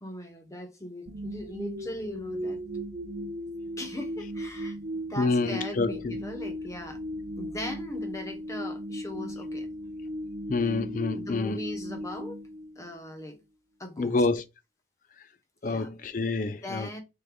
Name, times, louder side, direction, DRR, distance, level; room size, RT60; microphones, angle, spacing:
voice 1, 0.0-2.6 3.8-4.8 5.1-7.0 7.4-9.7 11.1-12.4 12.8-13.4 13.8-14.2 15.6-15.9 16.6-17.0, left 1 dB, 15° left, 0.9 m, -39 dB
sound 1, 1.1-13.2, equal, 50° right, 0.7 m, -37 dB
voice 2, 5.2-6.2 10.5-11.6 14.0-14.4 15.6-16.9, left 3 dB, 45° left, 0.5 m, -27 dB
6.2 x 3.8 x 2.2 m
head